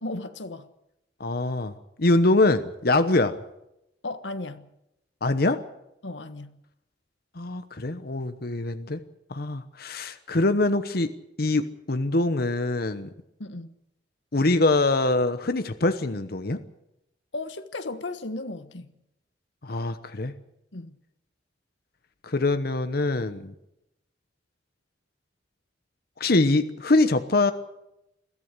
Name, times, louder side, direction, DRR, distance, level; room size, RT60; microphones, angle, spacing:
voice 1, 0.0-0.7 4.0-4.7 6.0-6.6 13.4-13.7 17.3-18.9 20.7-21.0, left 2 dB, 90° left, 1.3 m, -35 dB
voice 2, 1.2-1.7 2.0-3.4 5.2-5.6 7.4-9.0 9.3-11.1 11.4-11.6 11.9-13.1 14.3-16.6 19.6-20.3 22.2-23.5 26.2-27.5, left 2 dB, 55° left, 1.0 m, -23 dB
22.0 x 14.5 x 8.3 m
head